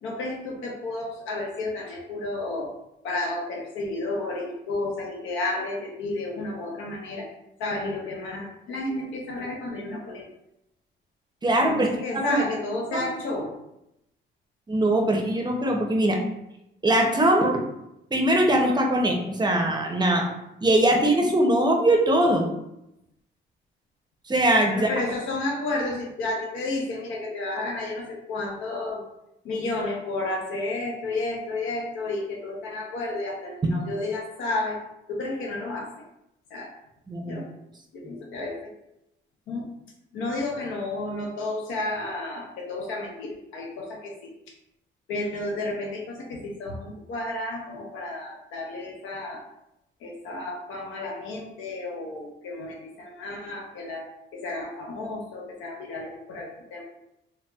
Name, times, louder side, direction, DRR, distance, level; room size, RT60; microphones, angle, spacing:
voice 1, 0.0-2.7 3.0-7.3 7.6-10.3 11.7-13.5 24.7-29.0 29.4-34.8 35.1-36.0 36.5-36.7 37.2-37.5 37.9-38.7 39.5-39.7 40.1-44.3 45.1-49.4 50.0-56.8, left 2 dB, 90° left, 0 dB, 0.7 m, -32 dB
voice 2, 11.4-11.9 12.1-12.4 12.9-13.1 14.7-16.2 16.8-17.6 18.1-20.3 20.6-22.4 24.3-24.9 37.1-37.4, right 1 dB, 20° right, 1 dB, 0.5 m, -21 dB
4.0 x 2.0 x 2.3 m, 0.85 s
cardioid pair, 90°, 20 cm